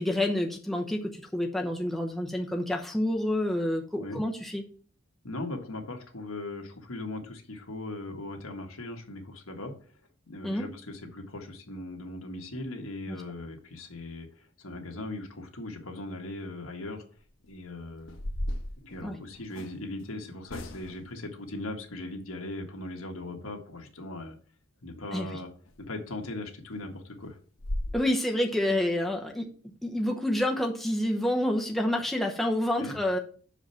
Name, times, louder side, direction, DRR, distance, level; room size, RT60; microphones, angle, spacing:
voice 1, 0.0-4.6 10.4-10.7 13.1-13.2 19.0-19.2 25.1-25.3 27.9-29.5 29.8-33.2, left 1 dB, ahead, 1 dB, 0.8 m, -28 dB
voice 2, 5.2-9.7 10.3-17.0 17.5-18.2 18.8-24.4 24.8-25.5 25.8-27.4 32.8-32.9, left 2 dB, 90° left, 3 dB, 1.6 m, -39 dB
sound 1, 17.2-17.5 18.0-19.8 20.5-21.1 25.7-25.8 26.2-26.3 26.7-26.8 27.2-27.3 27.6-27.9, left 1 dB, 70° left, 1.1 m, -35 dB
6.4 x 5.0 x 5.6 m, 0.43 s
head